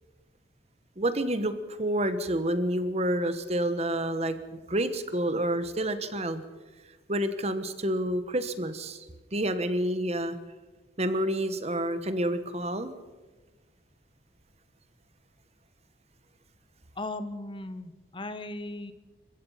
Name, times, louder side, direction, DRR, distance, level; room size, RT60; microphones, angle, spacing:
voice 1, 1.0-6.4 7.1-9.0 9.3-10.4 11.0-12.9, right 1 dB, 35° right, 11 dB, 1.3 m, -29 dB
voice 2, 16.9-18.9, left 2 dB, 25° left, 11 dB, 1.1 m, -37 dB
29.0 x 15.5 x 5.7 m, 1.2 s
head